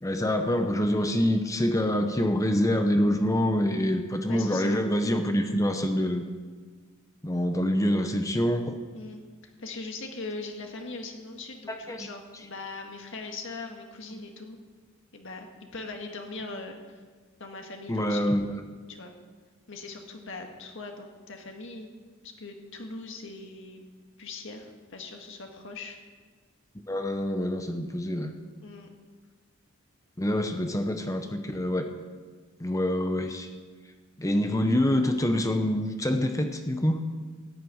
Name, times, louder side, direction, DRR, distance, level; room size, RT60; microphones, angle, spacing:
voice 1, 0.0-6.2 7.2-8.8 11.7-12.1 17.9-18.5 26.9-28.4 30.2-31.9 32.6-33.5 34.2-37.1, left 1 dB, 15° left, 6 dB, 0.8 m, -26 dB
voice 2, 4.3-4.8 8.9-9.2 9.6-14.6 15.1-15.5 15.7-17.0 17.4-18.2 18.9-19.1 19.7-21.9 22.2-23.9 24.2-26.0 28.6-28.9, left 3 dB, 60° left, 3 dB, 1.8 m, -40 dB
14.0 x 6.7 x 9.2 m, 1.5 s
head